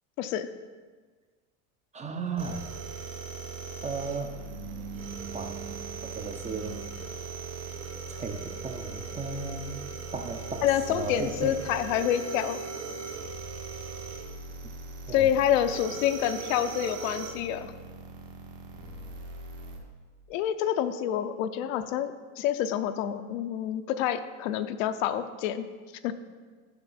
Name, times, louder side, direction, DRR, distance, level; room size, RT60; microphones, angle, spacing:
voice 1, 1.9-2.6 3.8-6.9 8.1-9.8 10.1-11.5 15.1-15.3, right 4 dB, 20° right, 6 dB, 0.4 m, -36 dB
sound 1, 2.4-19.8, right 4 dB, 55° right, 1.4 m, -39 dB
voice 2, 10.6-12.6 15.1-17.7 20.3-25.7 26.0-26.1, left 10 dB, 75° left, 10 dB, 0.6 m, -27 dB
6.9 x 5.6 x 4.1 m, 1.5 s
supercardioid pair, 105°, 39 cm